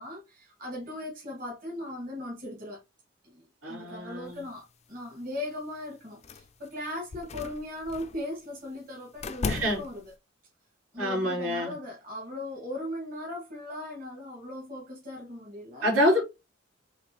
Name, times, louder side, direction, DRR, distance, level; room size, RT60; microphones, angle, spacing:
voice 1, 0.0-2.8 3.2-10.1 10.9-15.9, left 1 dB, 45° right, 1.9 m, -38 dB
voice 2, 3.6-4.4 9.5-9.8 11.0-11.7 15.8-16.3, equal, 85° right, 3.2 m, -26 dB
sound 1, 6.2-6.7 7.1-8.2 9.2-10.1, left 4 dB, 35° left, 0.4 m, -35 dB
5.1 x 3.1 x 3.0 m
head